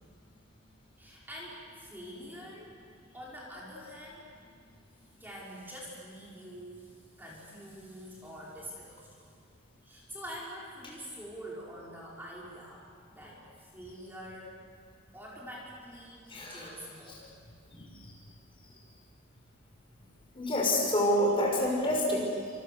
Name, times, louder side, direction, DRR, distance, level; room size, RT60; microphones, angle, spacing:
voice 1, 1.0-2.8 3.1-4.3 5.2-9.3 9.8-14.6 15.1-17.4, equal, 10° right, -5 dB, 4.9 m, -46 dB
voice 2, 16.3-16.7 17.7-18.1 20.3-22.5, left 1 dB, 25° left, -2 dB, 6.0 m, -28 dB
29.5 x 27.0 x 6.9 m, 2.1 s
head